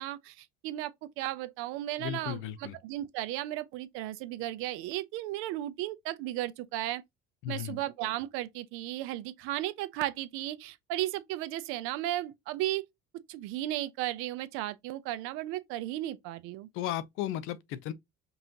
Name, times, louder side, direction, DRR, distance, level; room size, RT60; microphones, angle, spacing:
voice 1, 0.0-7.0 7.5-12.8 13.3-16.7, right 14 dB, 85° right, 0.6 m, -35 dB
voice 2, 2.0-2.8 7.4-7.8 16.7-17.9, left 12 dB, 75° left, 0.6 m, -35 dB
5.4 x 2.5 x 2.8 m
cardioid pair, 120°, 21 cm